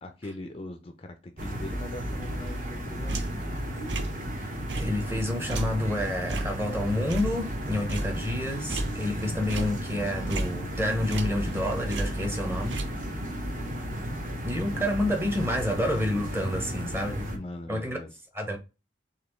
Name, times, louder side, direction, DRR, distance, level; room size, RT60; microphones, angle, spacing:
voice 1, 0.0-3.2 14.7-14.9 17.3-18.1, left 2 dB, 30° left, 0.4 m, -41 dB
sound 1, 1.4-17.4, equal, 40° right, 0.9 m, -34 dB
sound 2, 2.4-3.5 3.9-4.3 4.7-7.6 7.9-9.2 9.5-11.6 11.9-12.9, right 2 dB, 65° right, 0.5 m, -34 dB
voice 2, 4.4-12.8 14.4-17.3 17.7-18.0 18.3-18.6, left 1 dB, 10° right, 0.8 m, -29 dB
4.1 x 3.0 x 3.0 m
head